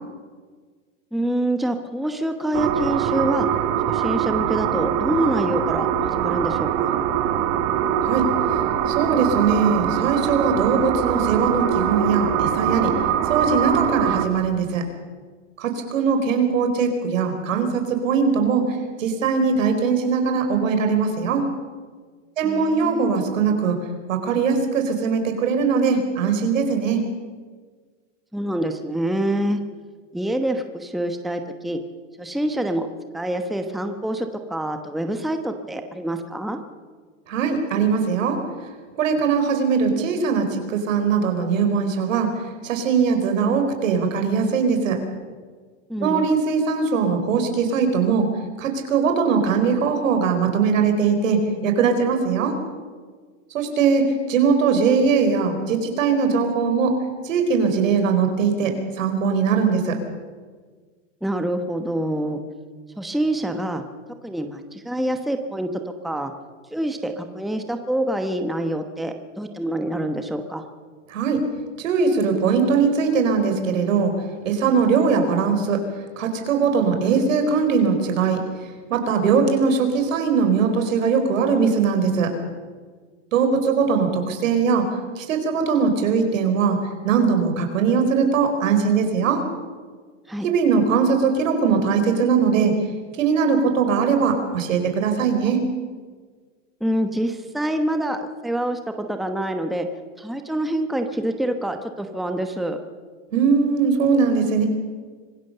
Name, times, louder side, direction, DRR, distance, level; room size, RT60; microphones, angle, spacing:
voice 1, 1.1-3.5 3.9-6.9 22.4-23.0 28.3-29.6 30.1-31.8 32.2-32.9 33.1-36.6 45.9-46.3 61.2-62.4 63.0-63.8 64.2-66.3 66.7-70.6 90.3-90.5 96.8-99.9 100.2-102.8, right 1 dB, ahead, 6 dB, 1.1 m, -26 dB
sound 1, 2.5-14.3, right 9 dB, 40° right, 1.6 m, -23 dB
voice 2, 8.9-12.9 13.3-14.8 15.6-21.4 22.4-23.8 24.1-27.0 37.3-38.4 39.0-42.3 42.6-45.0 46.0-48.3 48.6-52.6 53.5-57.0 57.2-60.0 71.1-71.4 71.8-74.1 74.4-75.8 76.2-78.4 78.9-82.3 83.3-84.9 85.2-86.8 87.0-89.4 90.4-92.8 93.2-95.7 103.3-104.7, right 5 dB, 80° right, 6 dB, 4.6 m, -20 dB
25.0 x 16.5 x 6.8 m, 1.5 s
supercardioid pair, 140°, 38 cm